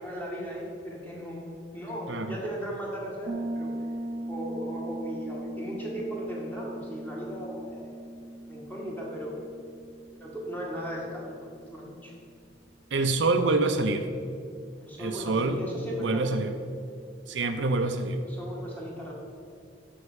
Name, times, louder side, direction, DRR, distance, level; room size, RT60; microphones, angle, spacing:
voice 1, 0.0-3.7 4.3-8.0 8.5-9.3 10.2-11.3 11.7-12.1 14.8-16.2 18.2-19.1, equal, 10° left, -3 dB, 1.7 m, -37 dB
Piano, 3.3-11.8, right 1 dB, 35° right, 0.4 m, -39 dB
voice 2, 12.9-14.1 15.0-15.6 16.0-16.5 17.3-18.2, right 3 dB, 75° right, 7 dB, 0.6 m, -26 dB
6.4 x 6.4 x 7.2 m, 2.3 s
head